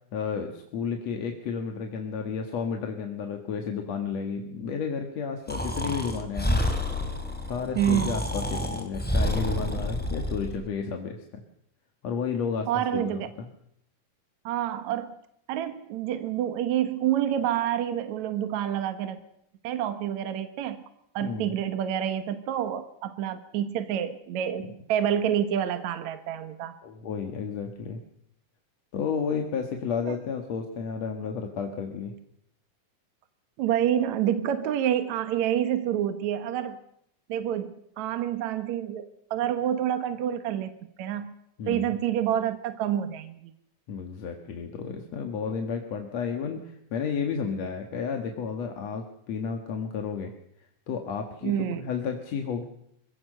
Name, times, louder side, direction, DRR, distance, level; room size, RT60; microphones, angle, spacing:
voice 1, 0.1-6.6 7.4-11.4 12.0-13.5 21.2-21.6 26.8-28.0 28.9-32.1 41.6-41.9 43.9-50.3 50.9-51.6 51.8-52.6, left 6 dB, 60° left, 4 dB, 2.7 m, -32 dB
Breathing, 5.5-10.6, left 1 dB, 5° left, 2.7 m, -29 dB
voice 2, 7.8-8.2 12.7-13.3 14.5-15.1 15.5-19.2 19.6-20.8 21.1-26.7 30.1-30.2 33.6-36.8 37.3-40.7 41.0-41.4 41.7-43.5 51.4-51.8, right 10 dB, 70° right, 9 dB, 2.4 m, -28 dB
26.0 x 17.0 x 6.6 m, 0.75 s
omnidirectional pair, 3.6 m